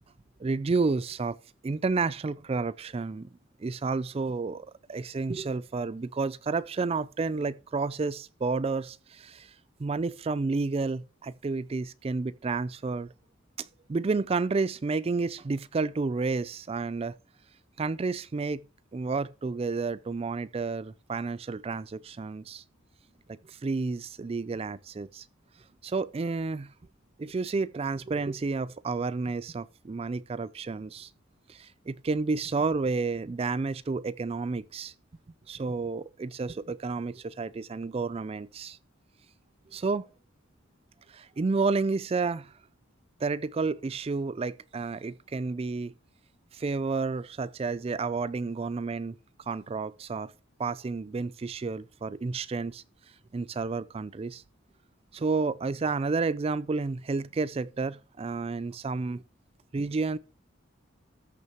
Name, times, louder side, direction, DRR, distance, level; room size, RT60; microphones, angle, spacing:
voice 1, 0.4-1.4 1.6-3.3 3.6-9.5 9.8-13.1 13.6-17.1 17.8-18.6 18.9-22.6 23.3-25.3 25.8-26.7 27.2-31.1 31.5-34.9 35.5-38.8 39.7-40.1 41.1-42.5 43.2-45.9 46.5-49.2 49.5-50.3 50.6-52.8 53.3-54.4 55.1-59.2 59.7-60.2, right 4 dB, 30° right, 0.3 m, -31 dB
13.5 x 6.1 x 3.0 m
head